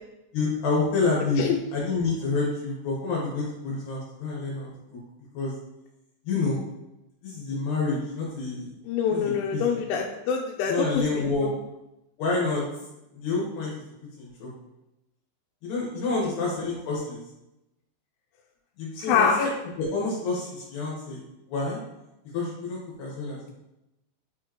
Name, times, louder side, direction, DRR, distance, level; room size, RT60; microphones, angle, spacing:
voice 1, 0.3-1.4 1.7-4.7 5.3-5.5 6.3-6.6 7.2-8.7 9.1-9.6 10.7-11.5 12.2-12.6 13.1-13.8 14.2-14.5 15.6-17.2 18.8-19.5 19.8-21.2 21.5-21.8 22.3-23.5, left 3 dB, 70° left, -4 dB, 3.2 m, -28 dB
voice 2, 8.9-11.2 16.2-16.4 19.0-19.5, left 6 dB, 85° left, 0 dB, 3.1 m, -25 dB
8.8 x 4.7 x 3.0 m, 0.91 s
omnidirectional pair, 5.4 m